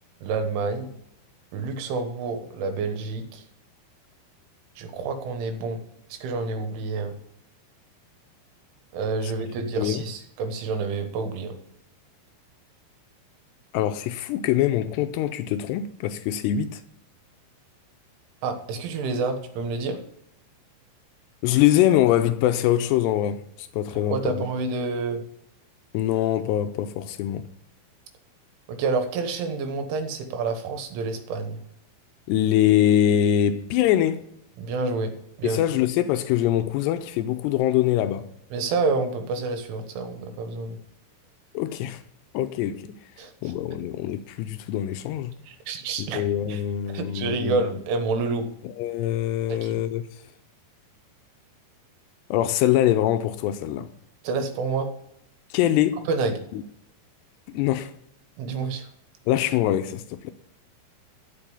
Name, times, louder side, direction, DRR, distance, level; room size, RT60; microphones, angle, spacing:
voice 1, 0.2-0.9 1.5-3.4 4.8-5.8 6.1-7.2 8.9-11.6 18.4-20.0 24.0-25.2 28.7-31.6 34.6-35.1 35.4-35.6 38.5-40.8 43.2-43.5 45.5-46.2 46.5-46.6 46.9-48.5 49.5-49.8 54.2-54.9 56.1-56.4 58.4-58.9, right 4 dB, 85° right, 3.7 m, -28 dB
voice 2, 9.7-10.0 13.7-16.8 21.4-24.4 25.9-27.5 32.3-34.3 35.4-38.3 41.5-42.0 42.3-42.9 43.4-45.3 46.0-47.6 48.6-50.0 52.3-53.9 55.5-56.0 56.5-56.6 57.5-57.9 59.3-60.3, left 12 dB, 90° left, 2.4 m, -23 dB
13.0 x 5.4 x 7.0 m
omnidirectional pair, 5.4 m